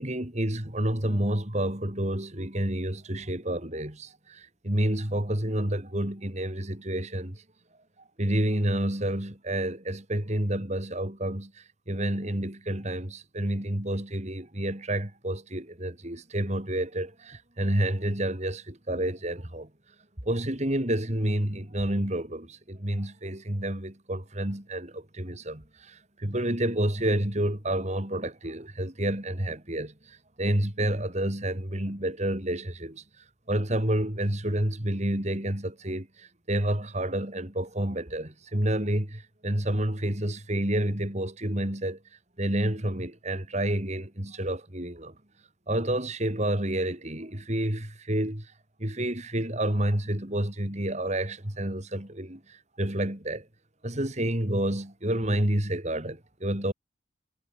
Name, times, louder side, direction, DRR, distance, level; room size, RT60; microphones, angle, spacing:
voice 1, 0.0-7.4 8.2-11.5 11.9-19.7 20.2-29.9 30.4-33.0 33.5-42.0 42.4-45.1 45.7-48.4 48.8-53.4 53.8-56.7, right 1 dB, 35° right, 3.1 m, -29 dB
head